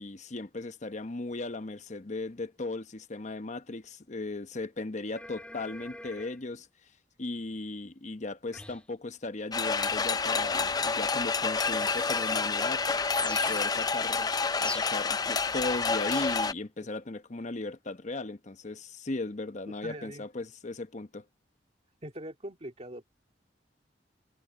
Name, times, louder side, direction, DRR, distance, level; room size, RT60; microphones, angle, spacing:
voice 1, 0.0-6.7 7.2-12.8 13.2-14.3 14.6-21.2, left 2 dB, 45° left, 0.9 m, -37 dB
sound 1, 5.1-6.4 8.5-8.9 9.8-10.1 11.6-12.5 13.1-13.8 14.5-15.0 16.0-16.4, left 2 dB, 5° left, 2.4 m, -41 dB
sound 2, 9.5-16.5, left 4 dB, 20° left, 0.5 m, -29 dB
voice 2, 19.8-20.3 22.0-23.1, right 1 dB, 40° right, 2.3 m, -42 dB
head